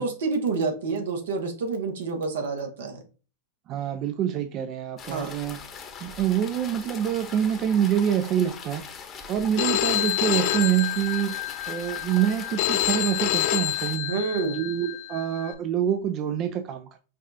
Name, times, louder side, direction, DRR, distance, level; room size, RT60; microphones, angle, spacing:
voice 1, 0.0-3.0 5.1-5.3 14.1-14.6, right 4 dB, 75° right, 1.0 m, -28 dB
voice 2, 3.7-5.6 6.0-8.8 9.3-11.3 11.7-14.1 14.5-16.9, right 10 dB, 40° right, 0.4 m, -26 dB
sound 1, 5.0-14.0, left 6 dB, 30° left, 0.8 m, -41 dB
Telephone, 9.6-15.5, left 13 dB, 55° left, 0.5 m, -28 dB
5.3 x 2.4 x 2.7 m
hypercardioid pair, 105°, 0 cm